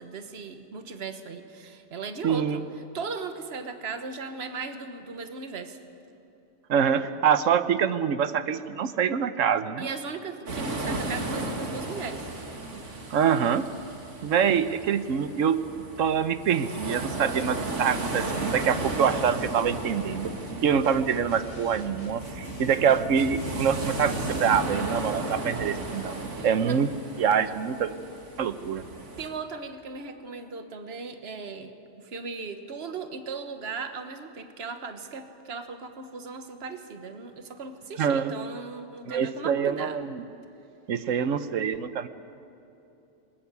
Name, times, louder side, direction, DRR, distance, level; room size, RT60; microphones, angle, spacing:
voice 1, 0.0-2.6 2.9-5.8 9.8-12.3 26.3-26.8 29.2-31.7 32.0-40.0, right 4 dB, 55° right, 8 dB, 1.5 m, -37 dB
voice 2, 2.2-2.6 6.7-9.9 13.1-13.7 14.2-15.6 16.0-20.3 20.6-26.2 26.4-26.9 27.2-27.9 28.4-28.8 38.0-38.4 39.0-40.3 40.9-42.1, right 7 dB, 90° right, 12 dB, 1.2 m, -25 dB
sound 1, 10.5-29.3, right 2 dB, 70° right, 2.5 m, -34 dB
sound 2, 20.8-24.7, left 2 dB, 85° left, 2.1 m, -46 dB
20.5 x 20.0 x 8.2 m, 2.9 s
omnidirectional pair, 1.3 m